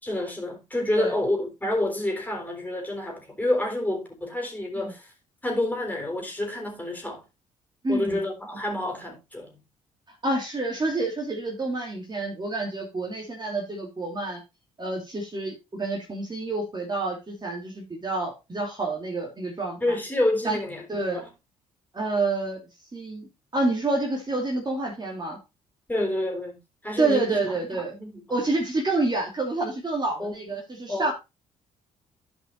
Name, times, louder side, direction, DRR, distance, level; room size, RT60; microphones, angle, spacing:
voice 1, 0.0-5.1 5.4-7.2 7.9-9.5 19.8-21.2 25.9-26.6 26.8-28.2 30.2-30.6 30.9-31.1, left 1 dB, 10° left, 3.8 m, -28 dB
voice 2, 7.8-8.2 10.2-14.4 14.8-20.0 20.4-20.6 20.9-21.2 21.9-22.6 22.9-25.4 27.0-27.9 28.3-31.1, right 2 dB, 25° right, 2.7 m, -28 dB
15.0 x 5.6 x 2.5 m
figure-of-eight pair, 45°, 17 cm